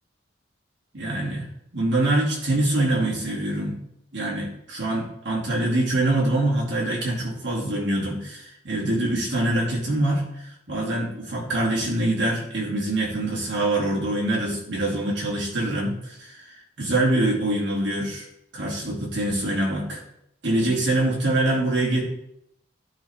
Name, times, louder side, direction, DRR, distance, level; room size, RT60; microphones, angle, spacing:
voice 1, 0.9-1.5 1.7-3.8 4.1-18.3 18.5-20.0 20.4-22.0, right 1 dB, 70° right, -4 dB, 2.3 m, -24 dB
10.5 x 4.3 x 3.5 m, 0.75 s
head